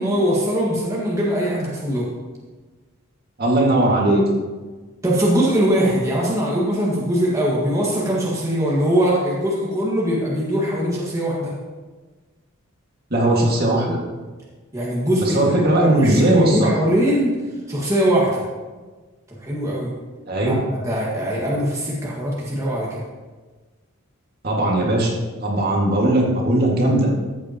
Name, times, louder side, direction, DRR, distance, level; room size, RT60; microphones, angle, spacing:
voice 1, 0.0-2.1 5.0-11.5 14.7-17.3 17.7-18.4 19.4-19.9 20.5-23.0, equal, 15° right, -5 dB, 1.7 m, -21 dB
voice 2, 3.4-4.2 13.1-14.0 15.2-16.9 20.3-20.6 24.4-25.2 25.4-27.1, right 1 dB, 45° right, -2 dB, 2.0 m, -18 dB
13.5 x 8.5 x 2.9 m, 1.3 s
head